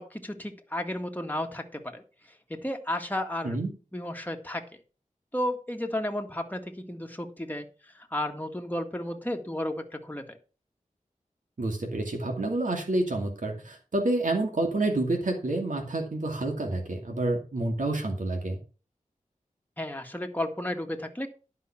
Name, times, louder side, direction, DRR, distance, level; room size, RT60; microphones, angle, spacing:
voice 1, 0.0-2.0 2.5-3.6 3.9-4.6 5.3-7.7 7.9-10.4 19.8-21.3, left 1 dB, 10° left, 4 dB, 1.8 m, -33 dB
voice 2, 11.6-18.6, right 2 dB, 70° right, 1 dB, 2.6 m, -28 dB
11.0 x 5.7 x 5.9 m, 0.34 s
wide cardioid pair, 60°, 14 cm